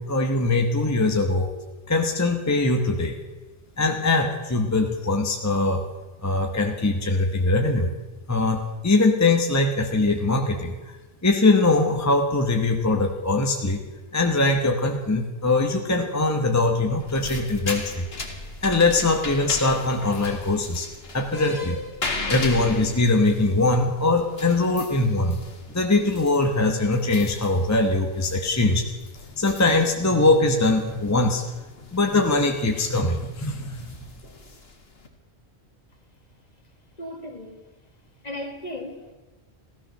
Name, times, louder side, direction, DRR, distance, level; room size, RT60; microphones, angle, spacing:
voice 1, 0.0-1.5 1.9-3.1 3.8-5.8 6.2-7.9 8.3-11.0 11.2-13.8 14.1-18.1 18.6-20.9 21.1-21.8 22.3-25.4 25.7-28.9 29.4-31.5 31.9-33.8, left 2 dB, 15° left, 1.1 m, -22 dB
sound 1, 16.9-35.1, left 3 dB, 60° left, 2.0 m, -37 dB
voice 2, 37.0-37.6 38.2-39.1, left 1 dB, 35° left, 1.7 m, -36 dB
15.5 x 13.5 x 6.7 m
omnidirectional pair, 1.2 m